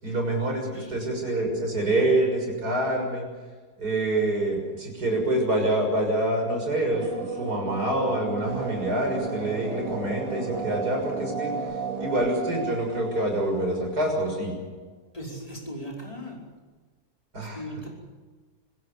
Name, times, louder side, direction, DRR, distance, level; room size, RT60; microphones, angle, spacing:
voice 1, 0.0-3.2 3.8-11.5 12.0-14.5 17.3-17.6, right 1 dB, 65° right, 2 dB, 7.1 m, -26 dB
voice 2, 0.7-1.1 15.1-16.5 17.4-17.9, equal, 20° left, -1 dB, 5.4 m, -38 dB
sound 1, 6.9-14.5, right 5 dB, 50° right, 2.6 m, -35 dB
sound 2, 8.4-13.4, right 2 dB, 20° right, 4.1 m, -37 dB
25.5 x 16.5 x 8.3 m, 1.4 s
omnidirectional pair, 1.8 m